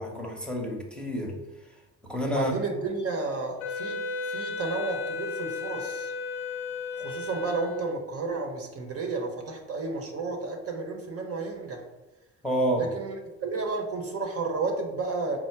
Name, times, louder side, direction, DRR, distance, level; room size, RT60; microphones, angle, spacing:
voice 1, 0.0-1.4 2.1-2.5 12.4-12.8, equal, 5° left, 0 dB, 0.8 m, -28 dB
voice 2, 2.3-4.0 4.3-6.1 7.0-11.8 12.8-15.4, right 3 dB, 50° right, 2 dB, 0.8 m, -32 dB
Wind instrument woodwind instrument, 3.6-8.2, left 3 dB, 80° left, 0.6 m, -34 dB
4.4 x 2.1 x 4.4 m, 1.0 s
cardioid pair, 90°, 30 cm